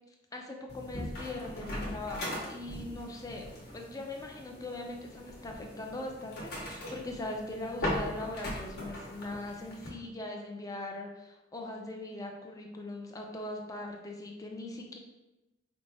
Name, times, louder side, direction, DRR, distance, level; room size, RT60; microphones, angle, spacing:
voice 1, 0.3-15.0, left 2 dB, 15° left, 1 dB, 0.5 m, -41 dB
sound 1, 0.7-9.9, left 1 dB, 50° left, 1.0 m, -40 dB
5.1 x 2.1 x 3.3 m, 0.98 s
head